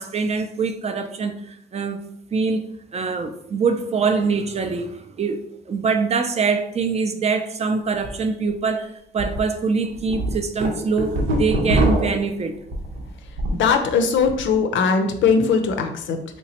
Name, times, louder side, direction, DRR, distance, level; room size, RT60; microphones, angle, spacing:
voice 1, 0.0-2.0 2.3-2.7 2.9-12.6, right 4 dB, 35° right, 0.4 m, -24 dB
sound 1, 7.9-8.1 8.5-8.6 9.2-9.4 9.8-13.7 14.0-14.4, right 1 dB, 80° right, 0.9 m, -23 dB
voice 2, 13.5-16.4, left 5 dB, 70° left, 0.5 m, -20 dB
3.3 x 3.0 x 2.8 m
cardioid pair, 90°, 20 cm